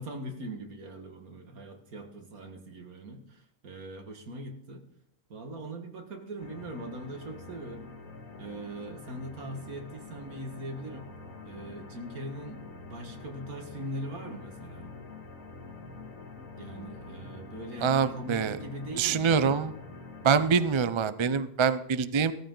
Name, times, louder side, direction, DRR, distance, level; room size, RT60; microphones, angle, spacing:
voice 1, 0.0-4.8 5.3-7.9 8.4-11.1 11.4-14.9 16.6-19.5, right 1 dB, 85° right, 4 dB, 2.3 m, -41 dB
sound 1, 6.4-20.7, left 4 dB, 70° left, 2.2 m, -46 dB
voice 2, 17.8-18.6 19.0-19.7 20.2-22.3, right 6 dB, 40° right, 13 dB, 0.4 m, -25 dB
15.5 x 14.0 x 3.9 m, 0.73 s
omnidirectional pair, 1.5 m